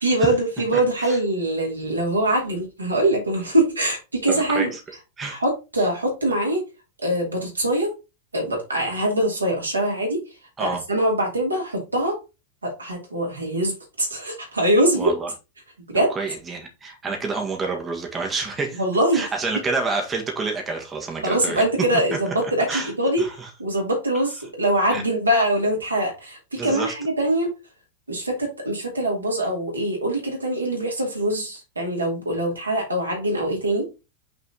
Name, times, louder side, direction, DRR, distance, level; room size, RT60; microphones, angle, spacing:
voice 1, 0.0-4.7 5.3-6.6 7.0-7.9 8.3-10.2 10.6-12.2 12.6-15.1 15.9-16.1 18.8-19.2 21.2-23.2 23.6-27.5 28.1-33.8, right 1 dB, 80° right, 2.6 m, -23 dB
voice 2, 0.7-1.2 4.3-4.8 5.2-5.4 10.6-10.8 15.0-15.3 16.1-18.8 19.1-21.6 22.1-22.2 22.7-22.9 23.2-23.5 24.9-25.0 26.6-26.9, right 4 dB, 20° right, 1.6 m, -28 dB
5.9 x 4.0 x 4.1 m
figure-of-eight pair, 90°, 0 cm